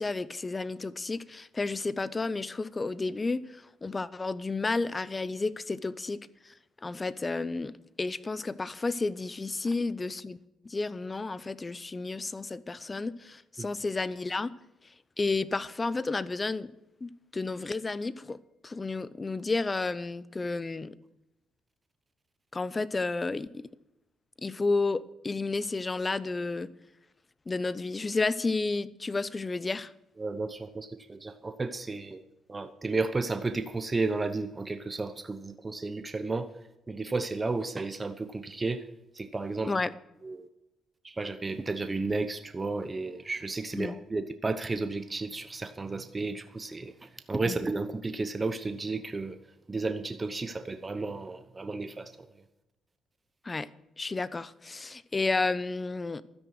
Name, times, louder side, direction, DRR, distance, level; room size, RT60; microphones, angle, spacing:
voice 1, 0.0-6.5 6.8-10.4 10.6-14.5 14.8-16.7 17.0-18.4 18.6-21.0 22.5-23.7 24.4-26.7 27.5-29.9 39.7-39.9 43.7-43.9 47.5-47.6 53.4-53.7 54.0-56.2, left 3 dB, 25° left, 0.7 m, -31 dB
voice 2, 30.2-32.2 32.5-36.5 36.9-38.8 39.1-39.7 40.2-40.5 41.0-49.4 49.7-52.1, right 3 dB, 25° right, 1.0 m, -33 dB
12.5 x 10.0 x 6.6 m
cardioid pair, 90°, 0 cm